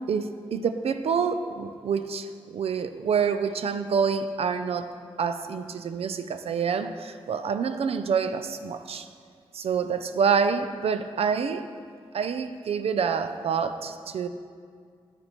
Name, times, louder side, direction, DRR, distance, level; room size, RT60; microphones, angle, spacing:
voice 1, 0.1-4.9 5.2-9.1 9.5-11.7 12.1-14.3, right 6 dB, 85° right, 10 dB, 0.4 m, -27 dB
12.0 x 4.2 x 3.0 m, 2.1 s
cardioid pair, 65°, 10 cm